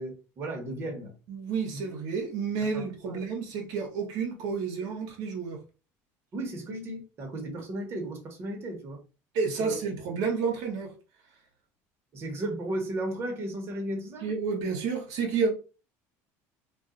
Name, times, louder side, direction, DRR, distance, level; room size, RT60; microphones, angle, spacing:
voice 1, 0.0-1.1 2.7-3.2 6.3-9.0 9.6-9.8 12.1-14.3, right 1 dB, 40° right, 1.1 m, -35 dB
voice 2, 1.3-5.6 9.3-10.9 14.2-15.5, right 5 dB, 70° right, 1.0 m, -30 dB
2.4 x 2.4 x 3.8 m
cardioid pair, 120°, 7 cm